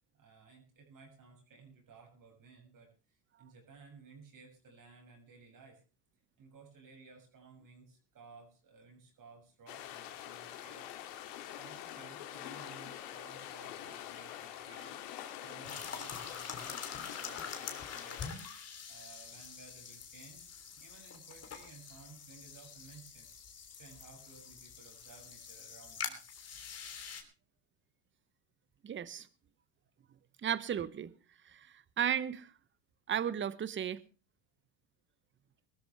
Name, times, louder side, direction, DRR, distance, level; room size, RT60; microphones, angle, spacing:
voice 1, 0.1-5.8 6.4-10.9 11.6-14.9 15.4-18.4 18.9-23.3 23.7-26.2, right 4 dB, 40° right, 6.7 m, -57 dB
sound 1, 9.7-18.3, left 11 dB, 75° left, 2.7 m, -45 dB
sound 2, 15.6-27.2, left 6 dB, 30° left, 3.3 m, -45 dB
voice 2, 28.8-29.3 30.4-31.1 31.4-32.5 33.1-34.0, right 9 dB, 25° right, 0.9 m, -35 dB
22.0 x 13.0 x 3.4 m
supercardioid pair, 100°, 49 cm